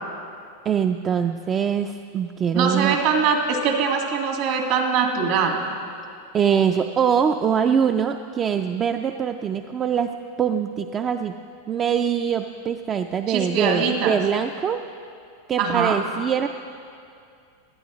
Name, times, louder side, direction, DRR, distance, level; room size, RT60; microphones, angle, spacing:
voice 1, 0.7-3.0 6.3-10.1 10.4-11.3 11.7-14.8 15.5-16.5, right 7 dB, 25° right, 7 dB, 0.3 m, -23 dB
voice 2, 2.5-5.6 13.3-14.2 15.6-16.0, right 6 dB, 60° right, 2 dB, 1.9 m, -22 dB
17.5 x 11.0 x 3.1 m, 2.4 s
supercardioid pair, 130°, 0 cm